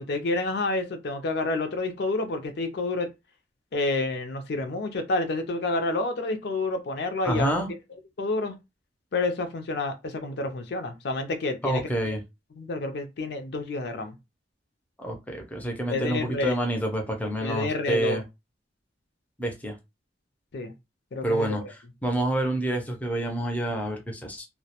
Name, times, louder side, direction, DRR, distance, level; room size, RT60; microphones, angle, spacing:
voice 1, 0.0-3.1 3.7-7.5 8.2-8.5 9.1-12.1 12.6-14.1 15.9-16.6 17.4-18.2 20.5-20.7 21.1-21.5, left 2 dB, 65° left, 0.5 m, -29 dB
voice 2, 7.2-7.7 11.6-12.2 15.0-18.2 19.4-19.8 21.2-24.5, right 1 dB, 10° left, 0.4 m, -28 dB
2.2 x 2.1 x 2.8 m
head